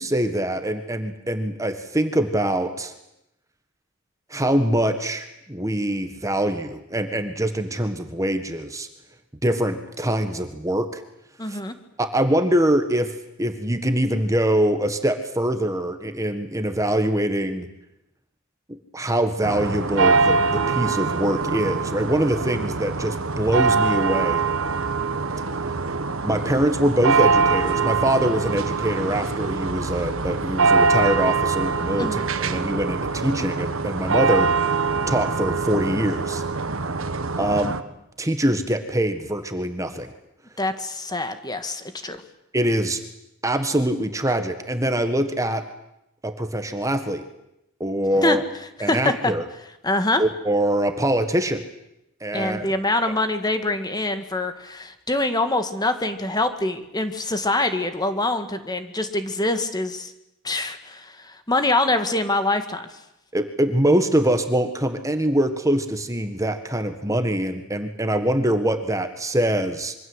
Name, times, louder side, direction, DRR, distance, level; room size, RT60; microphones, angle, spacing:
voice 1, 0.0-2.9 4.3-8.9 9.4-11.0 11.5-11.6 12.0-13.1 13.4-17.7 18.7-24.4 26.2-34.5 35.1-36.4 37.4-37.8 38.2-40.1 42.5-43.0 43.4-45.6 46.2-47.2 47.8-48.4 48.8-49.4 50.2-51.6 52.2-52.7 63.3-69.9, right 1 dB, 15° right, 8 dB, 1.6 m, -23 dB
voice 2, 11.4-11.7 32.0-32.3 40.6-42.2 48.2-48.4 48.9-49.3 49.8-50.2 52.3-60.1 60.4-63.0, left 2 dB, 20° left, 8 dB, 2.0 m, -24 dB
sound 1, 19.4-37.8, right 4 dB, 70° right, 1.5 m, -23 dB
26.0 x 24.0 x 8.1 m, 0.85 s
head